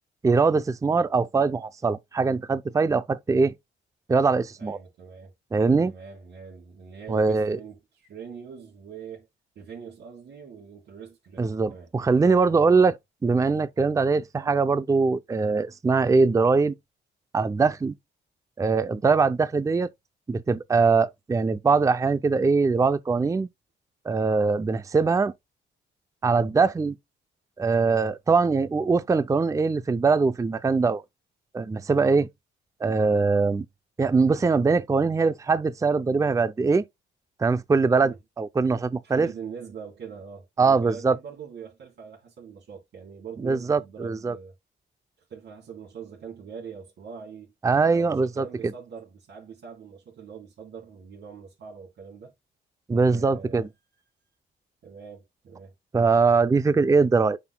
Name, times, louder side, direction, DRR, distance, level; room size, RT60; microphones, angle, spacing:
voice 1, 0.2-3.5 4.1-4.8 5.5-5.9 7.1-7.6 11.4-13.0 13.2-16.7 17.3-17.9 18.6-19.9 20.3-23.5 24.1-25.3 26.2-27.0 27.6-31.0 31.5-32.3 32.8-33.6 34.0-36.8 37.4-39.3 40.6-41.2 43.4-44.3 47.6-48.4 52.9-53.7 55.9-57.4, right 4 dB, 15° right, 0.5 m, -22 dB
voice 2, 4.6-5.3 5.8-9.3 9.6-11.9 38.0-38.2 39.0-44.5 45.2-47.5 47.9-52.3 53.1-53.7 54.8-55.7, right 6 dB, 65° right, 3.6 m, -43 dB
9.4 x 5.9 x 2.2 m
cardioid pair, 90°, 20 cm